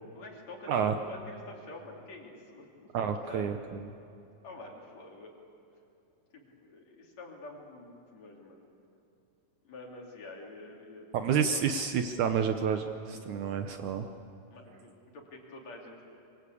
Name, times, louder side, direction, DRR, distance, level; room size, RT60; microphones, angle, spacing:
voice 1, 0.1-3.5 4.4-5.3 6.3-8.6 9.6-11.6 14.5-16.0, left 2 dB, 50° left, 0 dB, 4.1 m, -47 dB
voice 2, 2.9-3.8 11.1-14.1, right 7 dB, 70° right, 7 dB, 1.9 m, -29 dB
25.0 x 24.5 x 8.4 m, 2.8 s
omnidirectional pair, 4.3 m